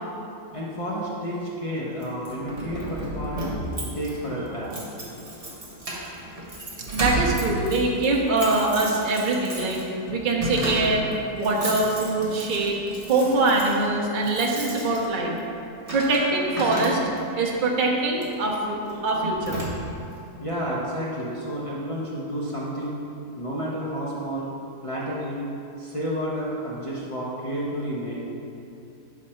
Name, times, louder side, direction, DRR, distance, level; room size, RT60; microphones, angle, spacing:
voice 1, 0.5-3.5 3.9-4.8 15.3-15.4 20.4-23.0 23.3-24.5 24.8-25.5 25.8-28.1, equal, 55° left, -7 dB, 0.3 m, -30 dB
Keys jangling, 2.0-17.4 18.1-18.4 18.9-19.0 19.2-20.1, right 1 dB, 25° right, 0.9 m, -33 dB
voice 2, 6.9-9.8 10.1-11.1 11.3-12.8 13.1-15.3 15.9-17.0 17.4-19.6, right 2 dB, 75° right, -2 dB, 0.4 m, -23 dB
6.2 x 4.1 x 4.3 m, 2.7 s
omnidirectional pair, 1.8 m